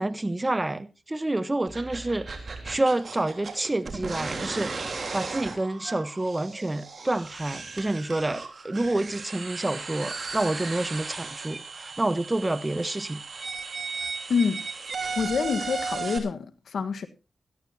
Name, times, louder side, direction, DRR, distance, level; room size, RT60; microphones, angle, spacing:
voice 1, 0.0-2.3 2.6-4.8 5.1-13.2, right 2 dB, 20° right, 1.1 m, -28 dB
sound 1, 1.7-16.2, right 4 dB, 50° right, 3.6 m, -36 dB
voice 2, 14.3-14.6 15.0-17.1, left 5 dB, 80° left, 1.4 m, -27 dB
18.0 x 14.0 x 2.8 m
cardioid pair, 55°, 0 cm